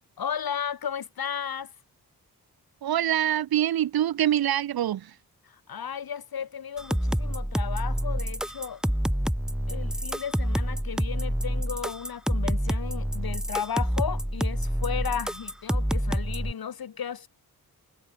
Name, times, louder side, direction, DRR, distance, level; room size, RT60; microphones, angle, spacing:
voice 1, 0.2-1.7 5.4-8.8 9.7-17.3, left 8 dB, 85° left, 3.1 m, -34 dB
voice 2, 2.8-5.1, right 11 dB, 85° right, 0.7 m, -25 dB
sound 1, 6.8-16.5, equal, ahead, 0.8 m, -28 dB
wide cardioid pair, 90°, 35 cm